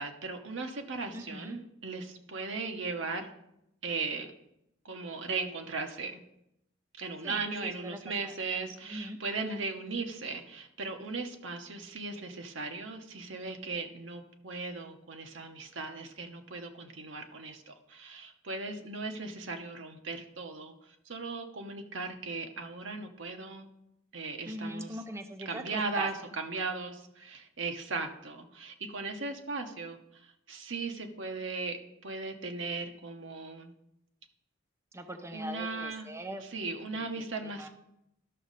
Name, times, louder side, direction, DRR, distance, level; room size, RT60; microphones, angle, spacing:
voice 1, 0.0-3.3 3.8-4.3 4.8-6.2 7.0-20.7 21.0-23.7 24.1-25.0 25.4-33.7 35.3-36.1 36.5-37.7, right 3 dB, 70° right, 5 dB, 1.1 m, -37 dB
voice 2, 1.1-1.6 7.2-8.3 8.9-9.2 24.4-26.1 34.9-36.4 36.9-37.7, right 1 dB, 15° right, 5 dB, 0.6 m, -41 dB
12.5 x 6.2 x 4.1 m, 0.82 s
head